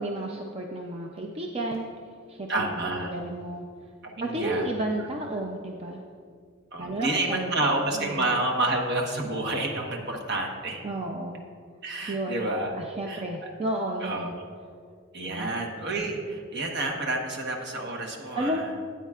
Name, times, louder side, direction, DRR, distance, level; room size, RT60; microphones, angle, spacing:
voice 1, 0.0-1.9 2.3-3.6 4.2-6.0 6.8-7.7 7.9-8.3 10.8-11.4 12.1-12.4 12.8-14.3 15.3-15.5 18.4-18.7, right 1 dB, 30° right, 1 dB, 0.5 m, -32 dB
voice 2, 2.5-3.1 4.0-4.7 6.7-10.8 11.8-13.2 14.0-14.4 15.1-18.7, right 2 dB, 55° right, 1 dB, 1.2 m, -29 dB
13.0 x 9.2 x 2.4 m, 2.1 s
head